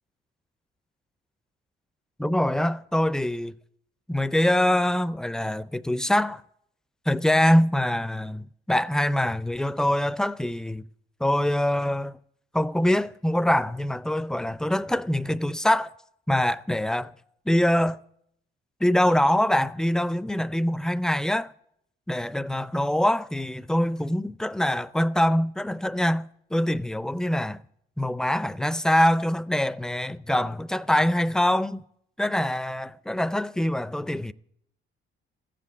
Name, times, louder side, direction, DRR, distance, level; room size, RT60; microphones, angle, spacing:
voice 1, 2.2-3.5 4.1-6.4 7.1-10.9 11.2-12.1 12.5-15.9 16.3-17.1 17.5-18.0 18.8-21.5 22.1-27.6 28.0-31.8 32.2-34.3, left 1 dB, 5° left, 0.4 m, -24 dB
14.5 x 7.6 x 8.2 m
cardioid pair, 90°, 20 cm